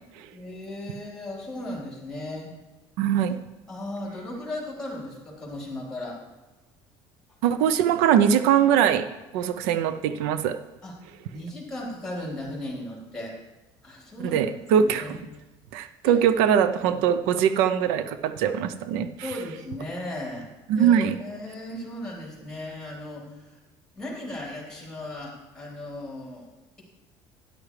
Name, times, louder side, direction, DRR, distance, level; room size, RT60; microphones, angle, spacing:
voice 1, 0.3-2.5 3.7-6.2 10.8-10.9 11.3-13.4 13.8-14.4 14.8-15.2 16.0-16.1 16.5-17.0 19.2-20.5 20.8-23.6 24.0-26.5, left 1 dB, 5° left, -3 dB, 3.7 m, -36 dB
voice 2, 3.0-3.4 7.4-9.1 9.3-10.6 14.2-15.2 15.7-19.4 20.7-21.2, right 8 dB, 90° right, 11 dB, 0.6 m, -22 dB
12.0 x 11.0 x 3.3 m, 1.1 s
cardioid pair, 150°, 10 cm